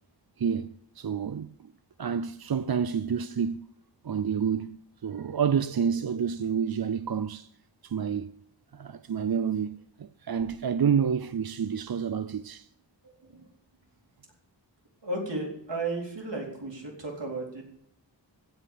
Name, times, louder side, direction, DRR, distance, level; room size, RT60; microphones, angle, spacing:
voice 1, 0.4-1.7 2.0-3.6 4.0-7.5 7.8-8.3 8.7-12.7, right 7 dB, 55° right, 0.6 m, -29 dB
voice 2, 15.0-17.6, right 2 dB, 70° right, 4.2 m, -33 dB
16.0 x 5.5 x 8.4 m
wide cardioid pair, 65°, 44 cm